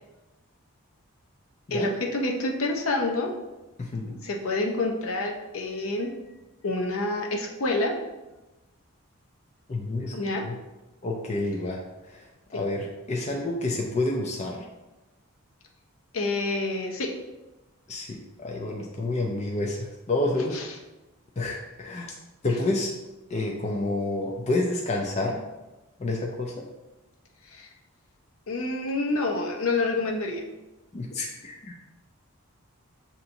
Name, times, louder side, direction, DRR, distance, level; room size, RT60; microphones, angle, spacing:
voice 1, 1.7-3.3 4.2-6.1 6.6-8.0 10.1-10.5 16.1-17.1 20.5-20.7 22.5-22.6 27.5-27.7 28.5-30.4, left 2 dB, 70° left, 2 dB, 0.6 m, -27 dB
voice 2, 3.8-4.2 9.7-10.2 10.4-10.5 11.0-12.2 12.5-14.7 17.9-20.6 21.4-22.2 22.4-22.9 23.3-25.4 26.0-26.7 30.9-31.8, left 2 dB, 30° left, 0 dB, 0.4 m, -29 dB
6.6 x 2.8 x 2.6 m, 1.0 s
head